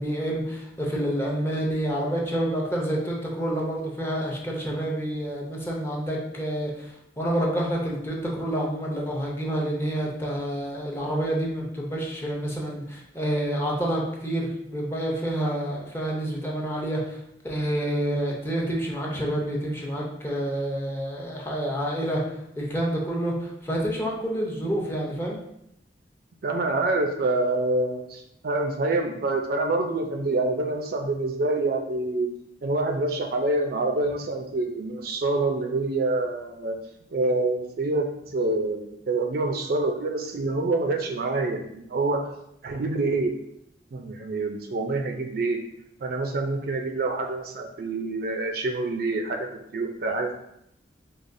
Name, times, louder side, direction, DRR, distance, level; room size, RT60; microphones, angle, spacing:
voice 1, 0.0-17.2 17.4-22.2 22.6-25.4, right 1 dB, 15° left, -3 dB, 0.7 m, -28 dB
voice 2, 26.4-32.3 32.6-36.8 37.1-42.3 42.6-43.3 43.9-45.6 46.0-50.4, right 2 dB, 60° right, 4 dB, 0.4 m, -26 dB
4.7 x 2.3 x 2.6 m, 0.76 s
head